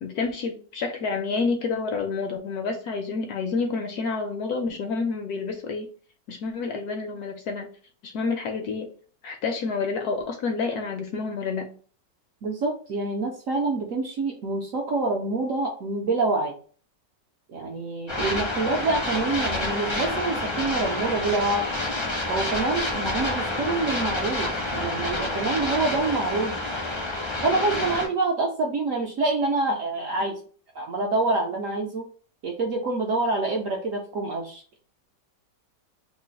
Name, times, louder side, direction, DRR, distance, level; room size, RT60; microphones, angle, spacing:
voice 1, 0.0-5.9 6.3-7.7 8.0-8.9 9.2-11.7, left 4 dB, 70° left, 5 dB, 0.9 m, -29 dB
voice 2, 12.4-16.5 17.5-21.6 22.3-26.6 27.4-30.4 30.7-32.0 32.4-34.6, right 3 dB, 70° right, 0 dB, 0.8 m, -26 dB
sound 1, 18.1-28.1, left 2 dB, 35° left, 0.4 m, -28 dB
3.1 x 2.4 x 3.9 m, 0.43 s
omnidirectional pair, 1.9 m